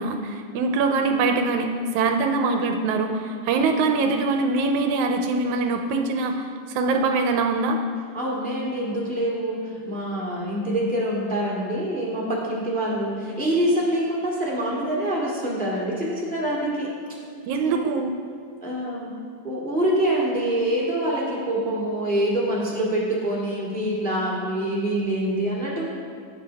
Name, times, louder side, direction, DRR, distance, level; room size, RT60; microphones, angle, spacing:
voice 1, 0.0-1.7 1.9-7.8 17.4-18.1, right 3 dB, 80° right, 5 dB, 2.0 m, -23 dB
voice 2, 8.1-16.9 17.6-17.8 18.6-19.1 19.4-25.8, right 1 dB, 5° left, -6 dB, 1.7 m, -25 dB
18.0 x 6.5 x 3.5 m, 2.2 s
omnidirectional pair, 3.4 m